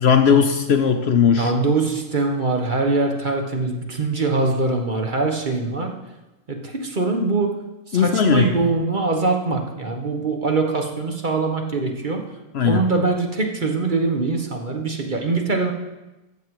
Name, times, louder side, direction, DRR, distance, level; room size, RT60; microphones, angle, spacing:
voice 1, 0.0-1.5 7.9-8.5 12.5-12.8, left 7 dB, 60° left, 7 dB, 0.9 m, -17 dB
voice 2, 1.4-6.0 6.5-7.6 7.9-12.2 12.6-15.7, right 3 dB, 40° right, 3 dB, 1.3 m, -23 dB
14.5 x 7.4 x 4.8 m, 1.0 s
omnidirectional pair, 1.4 m